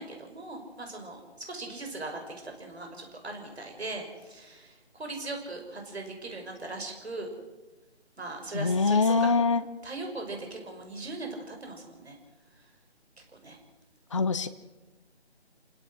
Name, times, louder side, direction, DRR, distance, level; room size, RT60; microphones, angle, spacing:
voice 1, 0.0-7.3 8.2-9.4 9.8-12.2 13.4-13.6, right 2 dB, 65° right, 3 dB, 6.2 m, -39 dB
voice 2, 8.5-9.6 14.1-14.5, left 4 dB, 30° left, 10 dB, 0.7 m, -23 dB
28.5 x 17.0 x 6.5 m, 1.2 s
figure-of-eight pair, 160°, 34 cm